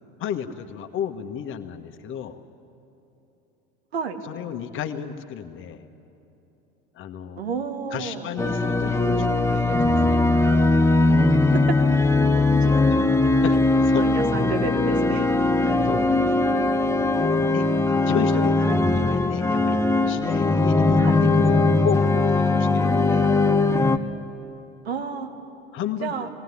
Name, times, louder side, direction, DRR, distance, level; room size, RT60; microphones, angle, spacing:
voice 1, 0.2-2.4 4.2-5.8 6.9-7.4 7.9-10.2 13.4-13.6 13.8-14.1 15.1-15.4 15.8-16.4 17.5-17.7 18.0-19.8 20.1-23.3 25.7-26.1, left 8 dB, 40° left, 7 dB, 1.4 m, -32 dB
voice 2, 7.4-8.3 11.5-11.8 12.2-13.3 14.0-15.3 21.0-21.2 24.9-25.3 26.0-26.3, right 6 dB, 80° right, 7 dB, 1.7 m, -31 dB
sound 1, 8.4-24.0, left 2 dB, 10° left, 0.9 m, -20 dB
19.0 x 17.5 x 9.8 m, 2.9 s
hypercardioid pair, 80°, 31 cm